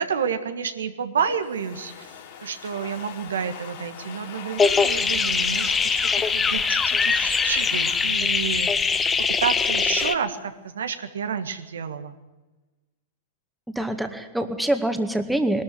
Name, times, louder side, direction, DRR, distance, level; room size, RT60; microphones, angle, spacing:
voice 1, 0.0-9.1 9.4-12.2, right 7 dB, 80° right, 9 dB, 1.6 m, -30 dB
Domestic sounds home sounds, 1.3-9.7, left 8 dB, 55° left, 4.6 m, -43 dB
sound 1, 4.6-10.2, left 5 dB, 20° left, 1.2 m, -22 dB
voice 2, 13.7-15.6, right 1 dB, 5° right, 7 dB, 2.0 m, -25 dB
21.0 x 13.0 x 9.4 m, 1.1 s
hypercardioid pair, 105°, 0 cm